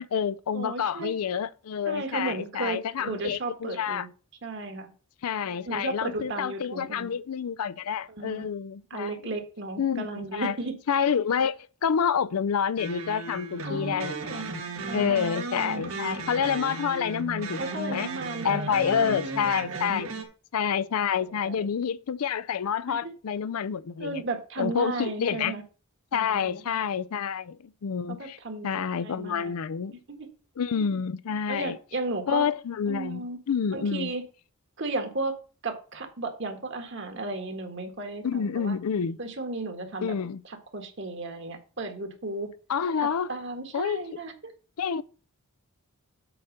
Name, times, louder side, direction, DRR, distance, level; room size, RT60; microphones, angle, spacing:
voice 1, 0.0-4.1 5.2-9.1 9.8-10.6 10.9-14.4 14.9-17.6 17.9-18.1 18.4-20.1 20.5-24.2 24.6-25.5 26.1-28.4 28.6-30.0 30.6-31.8 32.3-34.1 38.2-39.2 40.0-40.4 42.7-43.4 43.7-44.2 44.8-45.0, left 7 dB, 85° left, 0.4 m, -28 dB
voice 2, 0.5-1.1 1.9-4.1 4.4-4.9 5.7-7.1 8.1-8.5 8.9-10.7 13.7-14.5 14.9-15.2 17.6-20.1 21.3-21.7 22.9-23.0 24.0-25.6 26.1-26.8 28.1-28.7 29.0-29.5 30.1-30.3 31.5-32.5 32.9-33.4 33.7-34.2 34.8-35.3 35.6-38.8 39.2-40.1 40.7-42.5 43.0-44.5, right 2 dB, 55° right, 1.5 m, -34 dB
sound 1, 12.8-20.2, right 2 dB, 80° right, 1.6 m, -35 dB
7.8 x 4.3 x 6.5 m
head